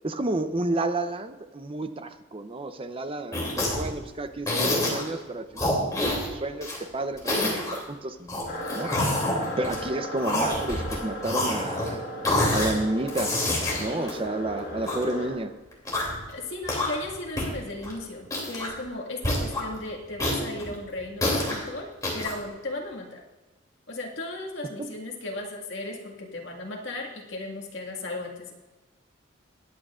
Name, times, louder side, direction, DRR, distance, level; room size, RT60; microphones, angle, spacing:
voice 1, 0.0-8.5 8.7-8.9 9.6-12.0 12.5-13.4 13.8-15.5 24.8-24.9, right 2 dB, 30° right, 9 dB, 0.6 m, -31 dB
sound 1, 3.3-3.9 4.5-5.1 5.6-6.8 7.2-7.8 8.3-9.8 10.2-11.0 11.2-11.9 12.2-12.7 13.1-15.0 15.7-16.2 16.6-17.1 17.4-17.5 17.8-17.9 18.3-18.8 19.2-19.6 20.2-21.6 22.0-22.3, left 1 dB, 20° left, 2.8 m, -27 dB
sound 2, 8.5-15.3, equal, 45° left, 4.2 m, -36 dB
voice 2, 16.3-23.2 23.9-28.5, left 2 dB, 70° left, 0 dB, 1.9 m, -36 dB
21.0 x 8.7 x 2.5 m, 1.2 s
head